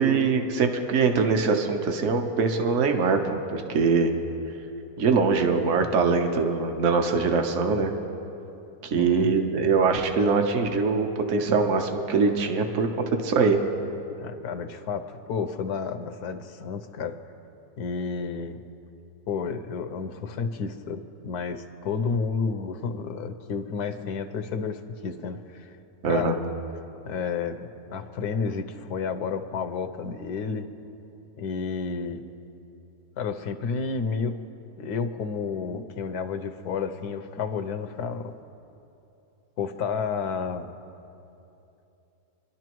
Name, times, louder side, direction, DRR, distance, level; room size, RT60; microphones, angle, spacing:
voice 1, 0.0-4.1 5.0-7.9 8.8-13.6 26.0-26.3, right 4 dB, 55° right, 4 dB, 1.2 m, -23 dB
voice 2, 8.9-9.3 14.2-17.2 17.8-18.6 19.3-25.7 26.0-26.4 27.0-30.7 31.4-32.2 33.2-34.3 34.8-38.3 39.6-40.7, left 5 dB, 80° left, 8 dB, 1.3 m, -31 dB
27.0 x 11.5 x 3.0 m, 2.8 s
omnidirectional pair, 1.6 m